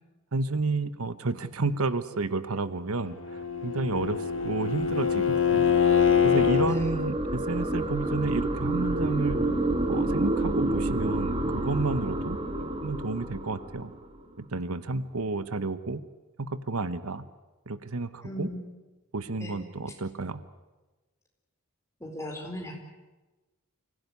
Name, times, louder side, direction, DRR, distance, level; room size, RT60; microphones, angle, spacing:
voice 1, 0.3-5.7 6.2-9.4 9.9-12.4 12.8-13.9 14.4-16.0 16.4-17.2 17.7-18.5 19.1-20.4, right 3 dB, 80° right, 14 dB, 1.1 m, -31 dB
Bowed string instrument, 3.1-6.8, left 7 dB, 60° left, 1.5 m, -24 dB
sound 1, 3.7-14.3, right 1 dB, 25° right, 1.9 m, -30 dB
voice 2, 18.2-18.6 19.4-19.6 22.0-22.7, equal, 15° left, 1 dB, 4.4 m, -37 dB
25.5 x 16.5 x 9.6 m, 1.2 s
head